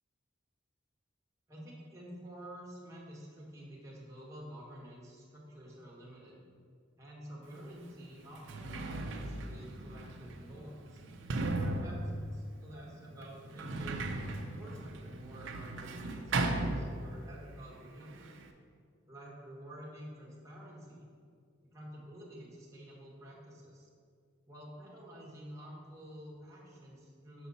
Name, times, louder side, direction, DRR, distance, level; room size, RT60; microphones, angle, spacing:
voice 1, 1.5-6.4 7.0-11.0 11.6-14.0 14.4-18.3 19.1-21.0 21.7-23.9 24.4-27.5, equal, 15° right, -5 dB, 1.4 m, -49 dB
Sliding door, 7.5-7.6 8.3-17.4 17.7-18.5, right 2 dB, 65° right, 0.6 m, -37 dB
6.2 x 5.7 x 4.2 m, 2.1 s
head